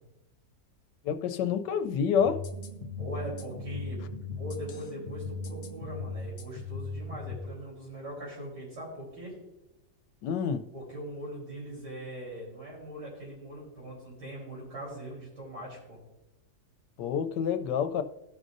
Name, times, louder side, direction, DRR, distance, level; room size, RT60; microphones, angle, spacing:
voice 1, 1.0-2.4 10.2-10.7 17.0-18.0, left 7 dB, 80° left, 1.2 m, -28 dB
sound 1, 2.2-7.4, left 3 dB, 50° left, 0.9 m, -38 dB
sound 2, 2.5-6.4, right 2 dB, 55° right, 3.0 m, -48 dB
voice 2, 3.0-4.0 4.4-9.3 10.7-16.0, right 1 dB, 70° right, 4.5 m, -41 dB
16.5 x 6.3 x 2.6 m
omnidirectional pair, 1.9 m